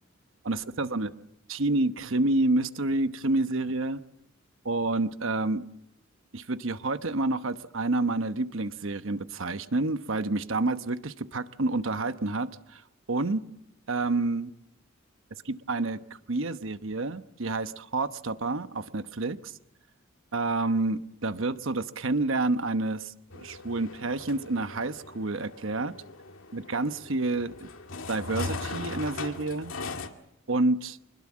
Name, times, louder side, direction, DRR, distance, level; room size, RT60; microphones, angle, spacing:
voice 1, 0.4-1.1 1.5-4.0 4.6-5.6 6.3-12.8 13.1-13.4 13.9-14.5 15.4-16.0 16.3-19.5 20.3-25.9 26.5-27.5 28.1-29.7 30.5-31.0, right 2 dB, 65° right, 11 dB, 1.1 m, -28 dB
sound 1, 23.3-30.1, left 3 dB, 80° left, 2.1 m, -39 dB
26.0 x 21.0 x 7.4 m, 0.79 s
head